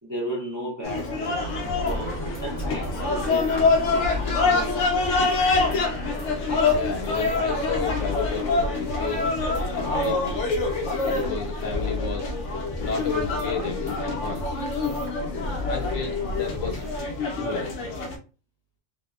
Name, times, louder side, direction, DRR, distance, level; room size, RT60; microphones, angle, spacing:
voice 1, 0.0-1.4 1.8-3.6 4.4-4.8, right 1 dB, 30° right, 0.3 m, -34 dB
sound 1, 0.8-18.2, left 3 dB, 75° left, 0.9 m, -26 dB
sound 2, 1.4-8.6, equal, 50° left, 1.1 m, -38 dB
sound 3, 1.6-17.0, left 2 dB, 60° right, 0.9 m, -35 dB
voice 2, 6.7-9.5 9.7-10.5 11.1-12.4 12.8-14.6 15.6-16.8 17.3-17.8, left 5 dB, 90° left, 1.2 m, -33 dB
2.6 x 2.1 x 2.3 m
omnidirectional pair, 1.3 m